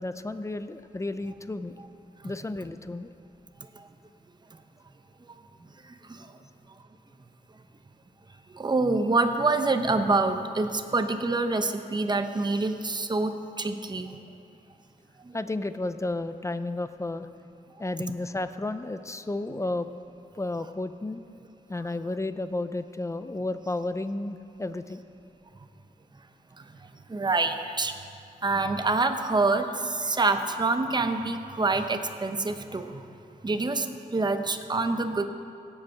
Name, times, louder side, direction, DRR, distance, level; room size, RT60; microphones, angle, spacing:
voice 1, 0.0-1.8 2.2-3.1 15.3-17.3 17.8-19.9 20.4-21.2 21.7-25.0, left 2 dB, 20° left, 11 dB, 0.5 m, -32 dB
voice 2, 5.9-6.2 8.5-14.2 15.3-15.4 27.1-27.9 28.4-33.0 33.4-35.2, right 3 dB, 25° right, 7 dB, 0.7 m, -26 dB
17.0 x 8.0 x 5.7 m, 2.6 s
wide cardioid pair, 120°, 16 cm